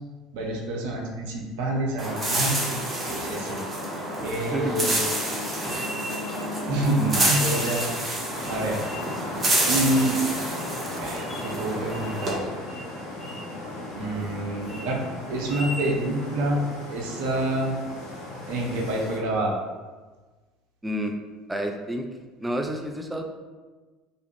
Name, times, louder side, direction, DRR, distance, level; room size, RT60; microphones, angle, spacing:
voice 1, 0.3-2.7 3.1-3.6 4.2-5.0 6.7-7.8 8.4-8.8 9.7-10.2 11.0-12.5 13.9-15.0 15.3-16.6 16.9-17.8 18.5-19.5, right 1 dB, 65° right, 0 dB, 0.5 m, -27 dB
sound 1, 2.0-12.3, right 1 dB, 30° right, 0.8 m, -28 dB
voice 2, 4.4-4.9 20.8-21.1 21.5-22.1 22.4-23.2, right 1 dB, 10° right, 3 dB, 0.3 m, -29 dB
sound 2, 5.6-6.5 7.1-8.0 8.4-9.2 9.7-10.1 10.6-10.7 11.1-11.6 11.9-12.4 12.7-12.9 13.2-13.5 13.9-14.3 14.6-14.9 15.4-15.9, equal, 25° left, 0.8 m, -39 dB
sound 3, 8.3-19.2, left 1 dB, 70° left, 0.6 m, -37 dB
2.4 x 2.0 x 3.1 m, 1.3 s
figure-of-eight pair, 65°, 0 cm